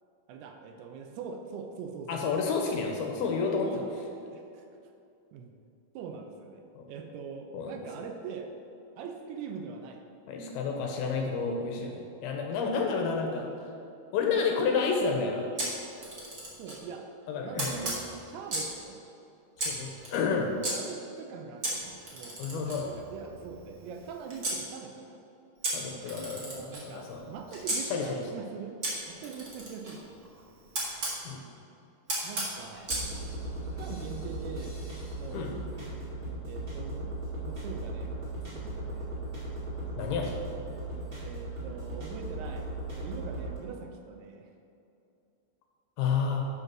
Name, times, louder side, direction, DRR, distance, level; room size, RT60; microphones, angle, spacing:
voice 1, 0.3-2.4 3.6-3.9 4.2-4.6 5.3-5.5 5.9-8.5 9.0-10.0 16.6-17.1 17.4-19.0 20.7-25.2 26.3-28.8 29.1-30.0 32.2-32.9 33.8-34.8 35.1-35.5 36.4-39.2 41.2-42.7 42.9-44.5, right 6 dB, 80° right, 4 dB, 2.5 m, -43 dB
voice 2, 2.1-3.7 6.8-6.9 7.5-7.8 10.3-13.5 14.1-15.5 17.3-17.8 19.6-20.5 22.4-22.9 25.7-27.2 27.8-28.2 31.3-31.4 35.3-35.5 40.0-40.3 46.0-46.4, left 5 dB, 75° left, 1 dB, 2.5 m, -30 dB
Camera, 15.6-16.8 17.6-18.8 19.6-20.7 21.6-24.6 25.6-27.8 28.8-31.2 32.1-33.1, right 1 dB, 55° right, 1.0 m, -35 dB
sound 1, 32.9-43.6, right 2 dB, 30° right, 1.8 m, -37 dB
8.0 x 5.6 x 6.0 m, 2.7 s
omnidirectional pair, 4.8 m